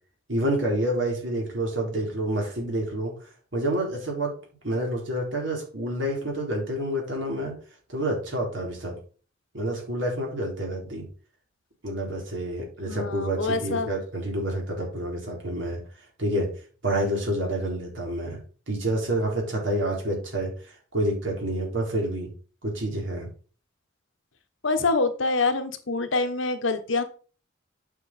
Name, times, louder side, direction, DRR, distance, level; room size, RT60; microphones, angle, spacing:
voice 1, 0.3-3.1 3.5-4.4 4.6-7.5 7.9-8.9 9.5-11.1 11.8-15.8 16.2-16.5 16.8-18.4 18.7-20.5 20.9-22.3 22.6-23.3, right 1 dB, 75° right, 0 dB, 4.0 m, -28 dB
voice 2, 12.9-13.9 24.6-27.0, left 3 dB, 85° left, 8 dB, 1.2 m, -25 dB
8.8 x 5.8 x 4.3 m, 0.39 s
head